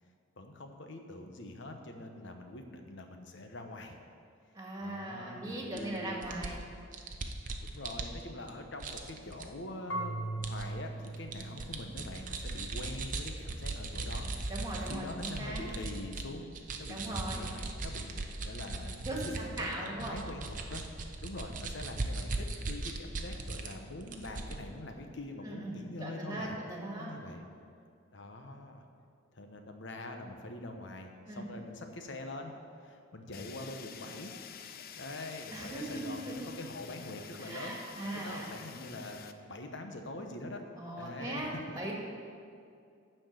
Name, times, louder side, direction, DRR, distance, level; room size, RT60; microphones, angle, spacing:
voice 1, 0.4-4.0 4.8-6.4 7.6-16.5 16.8-26.6 27.0-27.4 28.1-28.8 29.3-32.5 32.8-34.3 35.0-40.6 41.0-41.8, left 2 dB, 65° left, 4 dB, 1.1 m, -44 dB
voice 2, 4.5-6.6 14.5-15.6 16.9-17.5 19.1-20.2 25.4-27.1 31.3-31.4 35.5-36.5 37.4-38.5 40.8-41.9, right 1 dB, 20° right, -2 dB, 2.0 m, -39 dB
sound 1, 5.8-5.9 6.2-8.5 8.8-9.5 10.4-10.6 11.0-16.2 16.5-23.7 24.0-24.6, right 3 dB, 45° right, 0.8 m, -38 dB
Marimba xylophone / Wood, 9.9-12.8, right 2 dB, 90° left, 1.2 m, -40 dB
Fire, 33.3-39.3, left 8 dB, 50° left, 0.5 m, -49 dB
12.0 x 4.5 x 8.0 m, 2.4 s
head